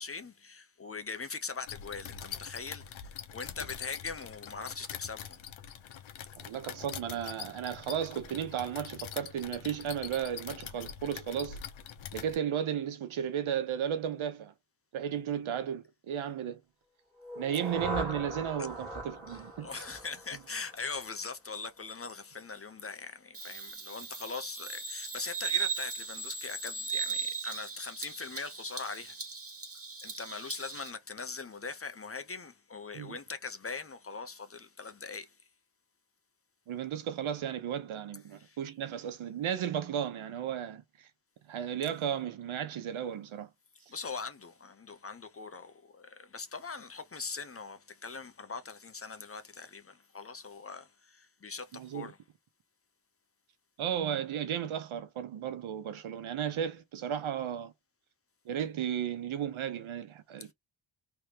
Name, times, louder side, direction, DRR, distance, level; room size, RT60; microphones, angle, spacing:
voice 1, 0.0-5.4 19.3-29.2 30.0-35.4 38.4-38.6 43.9-52.2, left 4 dB, 30° left, 0.8 m, -41 dB
sound 1, 1.7-12.4, left 9 dB, 70° left, 0.9 m, -44 dB
voice 2, 6.4-11.6 12.1-14.5 14.9-16.6 17.4-19.8 32.9-33.2 36.7-41.1 41.5-43.5 51.7-52.1 53.8-57.7 58.4-60.5, right 9 dB, 75° right, 1.0 m, -34 dB
sound 2, 17.2-21.1, right 1 dB, 5° left, 2.3 m, -40 dB
Bird vocalization bird call bird song, 23.3-30.9, right 5 dB, 30° right, 1.4 m, -38 dB
3.5 x 3.2 x 3.0 m
cardioid pair, 80°, 48 cm